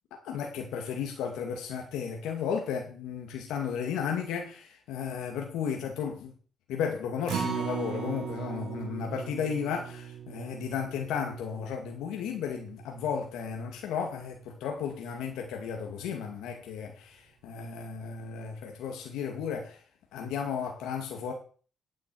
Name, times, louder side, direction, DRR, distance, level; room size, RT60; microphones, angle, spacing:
voice 1, 0.2-6.3 6.7-19.8 20.1-21.3, left 7 dB, 90° left, 2.3 m, -34 dB
Acoustic guitar, 7.3-13.6 14.0-14.1 14.5-14.6, right 7 dB, 75° right, 3.7 m, -38 dB
10.0 x 7.2 x 8.5 m
cardioid pair, 90°, 0 cm